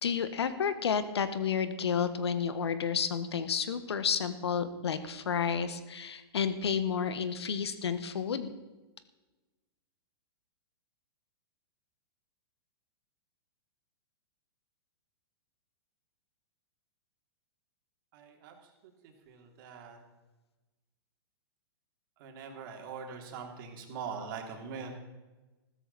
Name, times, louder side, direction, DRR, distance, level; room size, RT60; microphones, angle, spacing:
voice 1, 0.0-8.5, left 7 dB, 85° left, 12 dB, 1.4 m, -31 dB
voice 2, 18.1-18.5 19.3-20.0 22.2-25.0, right 6 dB, 55° right, 2 dB, 3.1 m, -42 dB
15.0 x 13.5 x 4.2 m, 1.2 s
hypercardioid pair, 130°, 13 cm